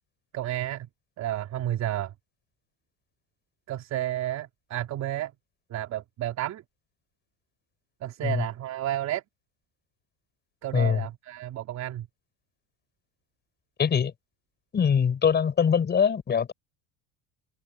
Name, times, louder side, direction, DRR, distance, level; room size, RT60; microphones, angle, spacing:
voice 1, 0.3-0.9 1.2-2.1 3.7-5.3 5.7-6.6 8.0-9.2 10.6-12.1, right 13 dB, 45° right, 3.8 m, -31 dB
voice 2, 10.7-11.0 13.8-14.1 14.7-16.5, left 7 dB, 25° left, 4.7 m, -23 dB
open air
cardioid pair, 145°, 39 cm